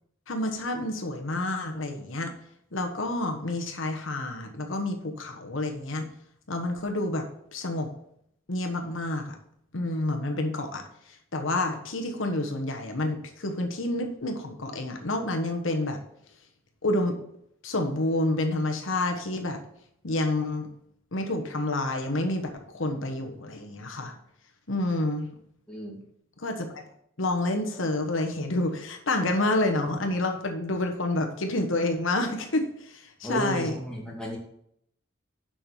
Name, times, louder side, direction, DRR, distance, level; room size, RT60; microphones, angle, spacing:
voice 1, 0.3-2.3 2.7-6.1 6.5-7.2 7.5-7.9 8.5-9.4 9.7-16.0 16.8-17.2 17.6-19.6 20.0-20.7 21.1-24.1 24.7-25.3 26.4-26.8 27.2-33.8, left 2 dB, 65° left, 4 dB, 1.2 m, -29 dB
voice 2, 25.7-26.0 33.2-34.4, equal, 5° left, -4 dB, 2.3 m, -33 dB
7.6 x 5.9 x 7.0 m, 0.72 s
head